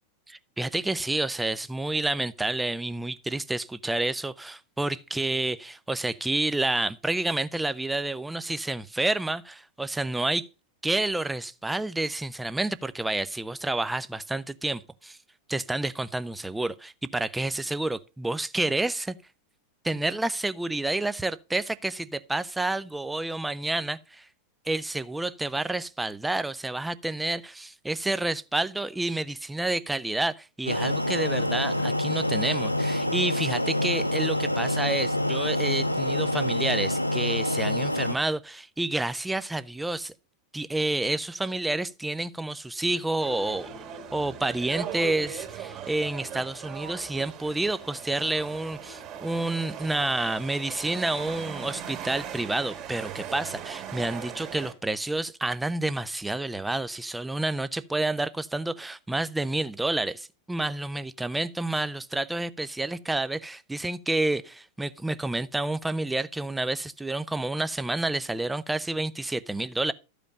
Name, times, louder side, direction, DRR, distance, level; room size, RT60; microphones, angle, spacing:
voice 1, 0.3-10.5 10.8-15.2 15.5-19.1 19.8-24.3 24.7-40.1 40.5-43.7 44.1-69.9, right 2 dB, 5° right, 0.5 m, -29 dB
sound 1, 30.7-38.2, left 1 dB, 90° left, 0.7 m, -26 dB
Turkish busineses Danforth Avenue Toronto, 43.2-54.7, right 8 dB, 35° right, 2.0 m, -39 dB
13.0 x 5.1 x 5.2 m
figure-of-eight pair, 90°, 0 cm